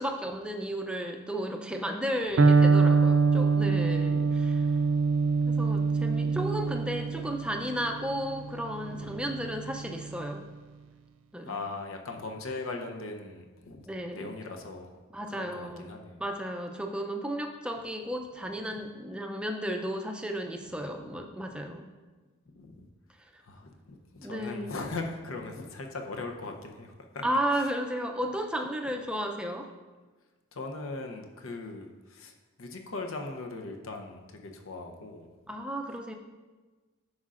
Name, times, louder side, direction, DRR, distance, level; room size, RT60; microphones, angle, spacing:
voice 1, 0.0-4.7 5.4-10.4 11.3-11.6 13.9-14.3 15.1-15.9 16.2-21.9 24.2-24.7 27.2-29.7 35.5-36.1, equal, 5° right, 3 dB, 0.4 m, -33 dB
Electric guitar, 2.4-10.2, right 4 dB, 75° right, 0.4 m, -25 dB
voice 2, 11.5-13.8 14.1-14.9 15.4-16.2 22.5-22.8 23.5-27.2 30.5-32.3 32.6-35.3, left 3 dB, 75° left, 3 dB, 0.7 m, -39 dB
9.6 x 6.3 x 2.5 m, 1.3 s
head